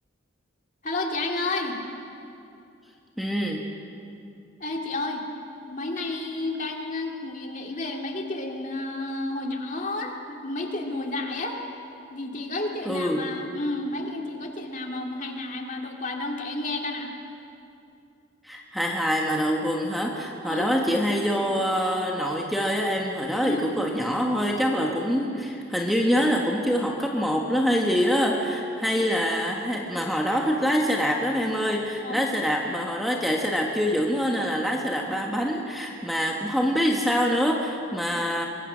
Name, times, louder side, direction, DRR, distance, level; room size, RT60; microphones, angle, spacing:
voice 1, 0.8-1.8 4.6-5.3 5.6-11.6 12.1-17.1 20.4-20.8 23.4-23.6 32.0-32.3, left 2 dB, 40° left, 1 dB, 2.3 m, -31 dB
voice 2, 3.2-3.6 12.8-13.3 18.4-38.5, equal, ahead, -1 dB, 1.4 m, -25 dB
24.0 x 22.0 x 6.3 m, 2.6 s
head